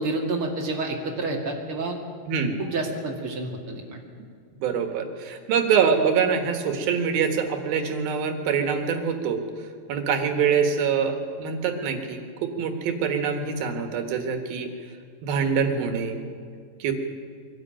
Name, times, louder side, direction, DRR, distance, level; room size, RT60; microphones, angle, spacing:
voice 1, 0.0-2.0 2.6-4.0, right 2 dB, 40° right, 1 dB, 2.6 m, -29 dB
voice 2, 2.3-2.6 4.6-9.4 9.9-14.7 15.2-16.2 16.8-16.9, right 6 dB, 75° right, 5 dB, 3.4 m, -24 dB
24.0 x 12.0 x 9.0 m, 2.1 s
omnidirectional pair, 4.3 m